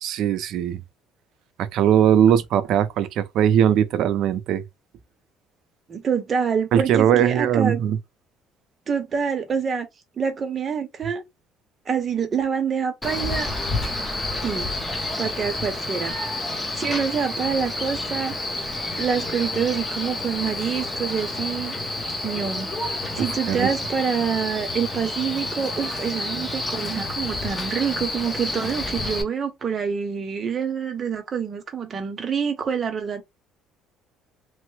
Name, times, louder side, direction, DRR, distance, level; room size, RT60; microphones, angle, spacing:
voice 1, 0.0-0.8 1.6-4.6 6.7-8.0 23.2-23.7, right 9 dB, 60° right, 0.5 m, -20 dB
voice 2, 5.9-7.8 8.9-9.9 10.2-11.2 11.9-13.5 14.4-14.7 15.2-16.2 16.5-18.3 19.0-21.8 22.2-33.2, right 6 dB, 30° right, 0.7 m, -26 dB
Male speech man speaking, 13.0-29.2, left 2 dB, 10° left, 0.7 m, -29 dB
3.0 x 2.0 x 3.1 m
cardioid pair, 140°, 0 cm